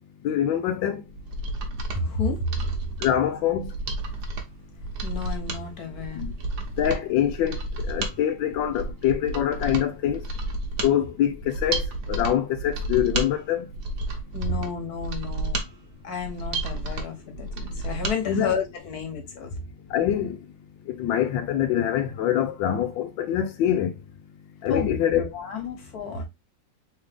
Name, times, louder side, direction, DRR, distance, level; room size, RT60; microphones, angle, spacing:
voice 1, 0.2-1.0 3.0-3.7 6.1-6.3 6.8-7.6 7.8-10.2 10.8-13.7 18.3-18.5 19.9-20.4 20.9-24.0 24.6-25.2, left 10 dB, 80° left, 1.3 m, -24 dB
Mechanisms, 1.1-18.2 18.5-18.6, right 2 dB, 65° right, 1.4 m, -32 dB
voice 2, 1.9-2.5 5.0-6.4 14.3-15.6 16.0-19.6 24.7-26.2, left 4 dB, 55° left, 1.6 m, -31 dB
3.6 x 3.6 x 3.4 m
omnidirectional pair, 2.0 m